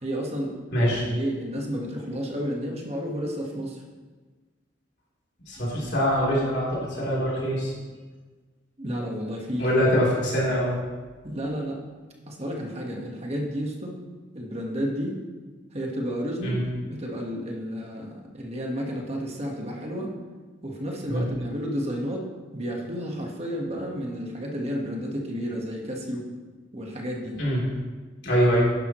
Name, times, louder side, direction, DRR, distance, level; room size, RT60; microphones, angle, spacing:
voice 1, 0.0-0.5 1.0-3.8 8.8-9.7 11.2-11.8 12.3-14.0 14.3-15.2 15.7-16.6 16.8-20.1 20.6-22.3 22.5-26.3 26.7-27.4, equal, 30° right, 0 dB, 1.6 m, -31 dB
voice 2, 0.7-1.0 5.5-7.7 9.6-10.8 16.4-16.6 21.1-21.3 27.4-27.7 28.2-28.7, equal, 60° left, -6 dB, 3.6 m, -23 dB
11.0 x 10.5 x 3.2 m, 1.4 s
head